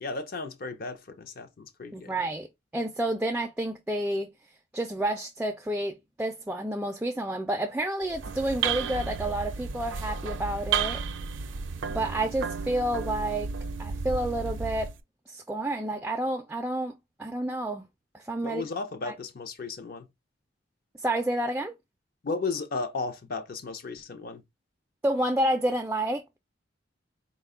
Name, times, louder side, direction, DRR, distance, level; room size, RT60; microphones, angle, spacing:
voice 1, 0.0-2.2 18.4-20.1 22.2-24.4, left 3 dB, 50° left, 0.5 m, -34 dB
voice 2, 1.9-2.5 2.7-4.3 4.7-11.0 11.9-13.5 13.8-14.9 15.3-16.9 17.2-17.9 18.1-18.6 19.1-19.2 21.0-21.7 25.0-26.4, right 1 dB, 10° right, 0.3 m, -29 dB
sound 1, 8.0-15.0, right 6 dB, 85° right, 0.5 m, -32 dB
4.3 x 2.2 x 3.5 m
head